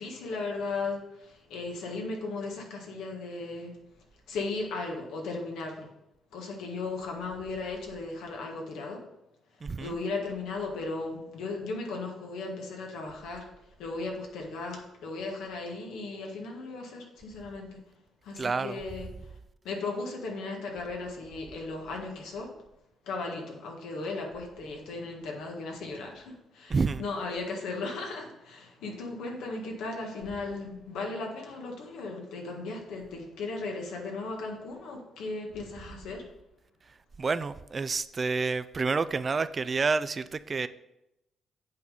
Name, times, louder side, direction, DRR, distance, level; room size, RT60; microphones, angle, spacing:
voice 1, 0.0-3.7 4.3-5.9 6.3-9.0 9.8-13.4 13.8-17.8 18.2-19.1 19.6-22.5 23.0-36.2, left 3 dB, 85° left, 1 dB, 1.6 m, -36 dB
voice 2, 9.6-10.0 18.4-18.8 26.7-27.0 37.2-40.7, right 4 dB, 35° right, 14 dB, 0.4 m, -29 dB
8.4 x 4.0 x 5.0 m, 0.87 s
cardioid pair, 90°, 0 cm